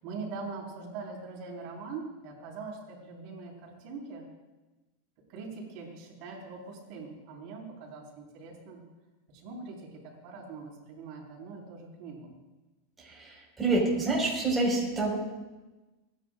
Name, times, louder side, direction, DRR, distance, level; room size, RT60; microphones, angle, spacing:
voice 1, 0.0-4.3 5.3-8.8 9.3-12.3, right 4 dB, 50° right, -3 dB, 4.8 m, -42 dB
voice 2, 13.0-15.2, right 2 dB, 15° right, -3 dB, 5.1 m, -27 dB
29.0 x 10.5 x 2.6 m, 1.1 s
supercardioid pair, 140°, 0 cm